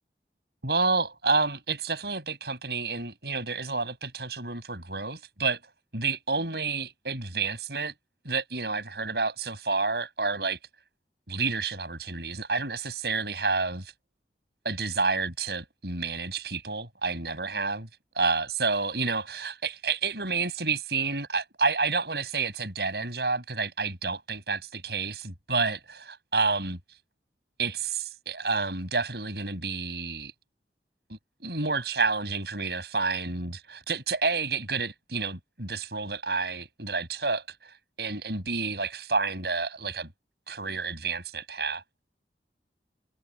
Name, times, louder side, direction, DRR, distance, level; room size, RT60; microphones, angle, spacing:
voice 1, 0.6-5.6 5.9-7.9 8.2-10.6 11.3-13.9 14.6-17.9 18.2-26.8 27.6-30.3 31.1-40.1 40.5-41.8, right 4 dB, 65° right, 7.4 m, -29 dB
head